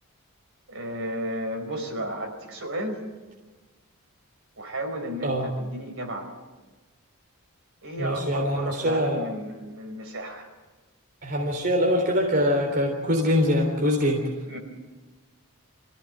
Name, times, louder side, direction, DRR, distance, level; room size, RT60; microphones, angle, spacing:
voice 1, 0.7-2.9 4.6-6.4 7.8-10.5 14.2-14.6, right 1 dB, 60° right, 4 dB, 4.9 m, -33 dB
voice 2, 8.0-9.2 11.2-14.2, equal, 45° right, 0 dB, 3.7 m, -23 dB
25.0 x 16.5 x 9.1 m, 1.2 s
head